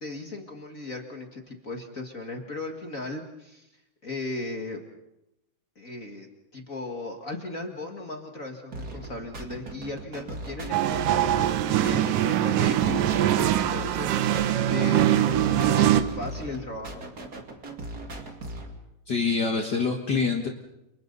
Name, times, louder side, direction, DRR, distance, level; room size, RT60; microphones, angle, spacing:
voice 1, 0.0-3.7 4.0-4.8 5.7-17.0, left 2 dB, 40° left, 3 dB, 1.1 m, -37 dB
sound 1, 8.7-18.7, right 2 dB, 30° right, 2.1 m, -39 dB
sound 2, 10.7-16.0, right 12 dB, 70° right, 2.2 m, -23 dB
voice 2, 19.1-20.5, left 4 dB, 80° left, 2 dB, 0.9 m, -25 dB
30.0 x 29.5 x 4.1 m, 0.86 s
omnidirectional pair, 4.6 m